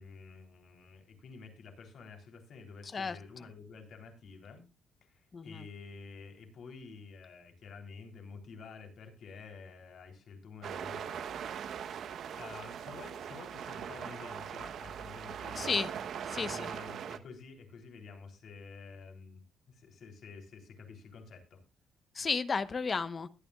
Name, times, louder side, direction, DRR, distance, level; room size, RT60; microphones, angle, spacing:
voice 1, 0.0-4.7 5.1-11.2 12.3-15.9 16.4-21.6, left 4 dB, 65° left, 3.7 m, -50 dB
voice 2, 5.3-5.6 15.6-15.9 16.3-16.7 22.2-23.3, left 5 dB, 35° left, 0.9 m, -33 dB
sound 1, 10.6-17.2, right 8 dB, 65° right, 1.0 m, -40 dB
20.5 x 9.4 x 2.4 m
cardioid pair, 100°, 0 cm